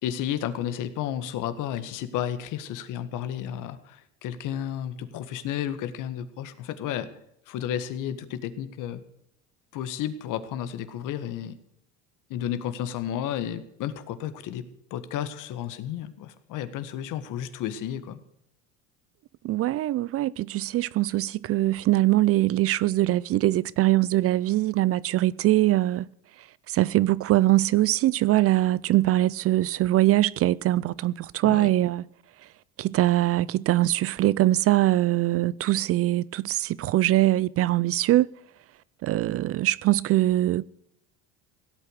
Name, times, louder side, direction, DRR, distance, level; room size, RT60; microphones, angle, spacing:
voice 1, 0.0-7.1 7.5-9.0 9.7-11.6 12.3-18.2 31.4-31.7, left 10 dB, 60° left, 1.7 m, -32 dB
voice 2, 19.4-26.1 26.7-32.0 32.8-38.3 39.0-40.6, right 15 dB, 45° right, 0.4 m, -22 dB
17.0 x 8.4 x 6.5 m
supercardioid pair, 100°, 34 cm